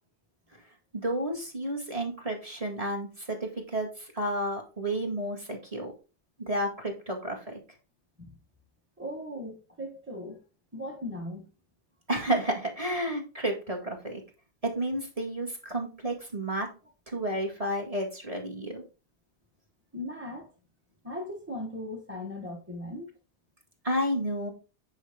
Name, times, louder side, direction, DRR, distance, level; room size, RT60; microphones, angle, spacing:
voice 1, 0.9-5.9 6.5-7.6 12.1-14.2 14.6-16.7 17.1-18.8 23.8-24.5, right 1 dB, 30° right, 2.0 m, -31 dB
voice 2, 9.0-10.4 10.7-11.5 19.9-20.5 21.0-23.1, left 1 dB, 10° right, 1.3 m, -38 dB
9.2 x 5.0 x 3.6 m
omnidirectional pair, 1.2 m